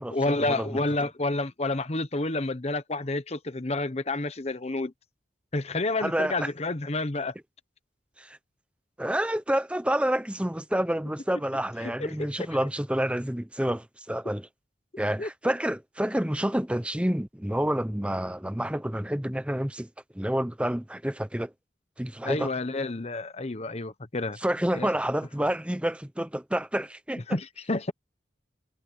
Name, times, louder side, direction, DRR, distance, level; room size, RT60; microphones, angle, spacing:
voice 1, 0.1-4.9 5.5-7.3 11.8-12.5 15.2-15.3 22.2-24.4 24.7-24.9 27.3-27.9, left 2 dB, 35° left, 1.0 m, -29 dB
voice 2, 6.0-6.5 8.2-8.4 9.0-14.5 15.0-19.9 20.1-21.5 22.0-22.5 24.4-27.2, right 1 dB, 5° right, 0.9 m, -28 dB
head